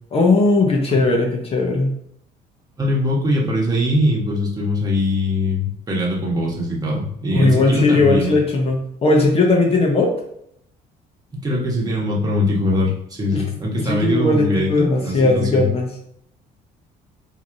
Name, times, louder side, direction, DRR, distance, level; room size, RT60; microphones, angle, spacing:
voice 1, 0.1-1.9 7.3-10.1 13.3-13.4 13.7-15.9, left 2 dB, 35° left, 1 dB, 0.7 m, -18 dB
voice 2, 0.9-1.2 2.8-8.3 11.3-15.7, left 1 dB, 20° right, -3 dB, 1.2 m, -22 dB
3.2 x 2.7 x 3.8 m, 0.71 s
cardioid pair, 110°, 17 cm